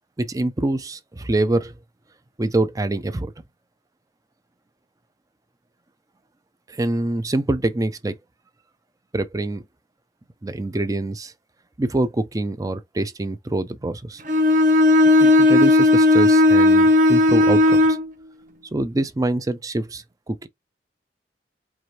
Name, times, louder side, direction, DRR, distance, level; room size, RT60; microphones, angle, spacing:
voice 1, 0.2-1.7 2.4-3.3 6.7-8.2 9.1-9.7 10.4-11.3 11.8-14.2 15.2-18.0 18.7-20.5, right 2 dB, 20° right, 0.4 m, -25 dB
Bowed string instrument, 14.3-18.1, left 2 dB, 45° right, 0.8 m, -15 dB
4.8 x 2.5 x 2.9 m
head